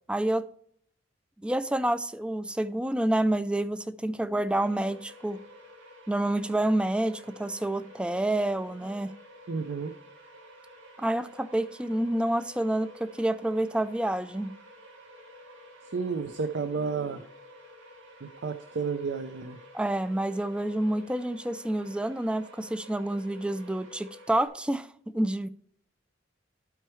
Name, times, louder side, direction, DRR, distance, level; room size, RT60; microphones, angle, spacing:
voice 1, 0.1-0.4 1.4-5.4 6.1-9.1 11.0-14.5 19.7-24.9 25.1-25.5, right 1 dB, 5° right, 0.3 m, -28 dB
sound 1, 4.5-24.5, left 1 dB, 90° right, 1.7 m, -51 dB
voice 2, 9.5-9.9 15.9-17.3 18.2-19.6, right 5 dB, 65° right, 0.5 m, -31 dB
12.0 x 4.6 x 3.1 m
head